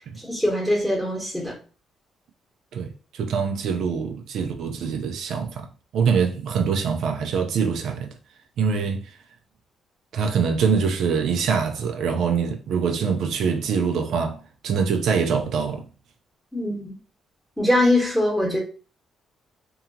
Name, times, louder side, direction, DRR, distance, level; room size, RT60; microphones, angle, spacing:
voice 1, 0.0-1.6 16.5-16.9 17.6-18.6, left 1 dB, ahead, 0.9 m, -22 dB
voice 2, 2.7-5.7 5.9-8.1 8.6-9.0 10.1-15.8, right 6 dB, 75° right, 0.4 m, -24 dB
2.7 x 2.2 x 2.6 m
cardioid pair, 90°, 0 cm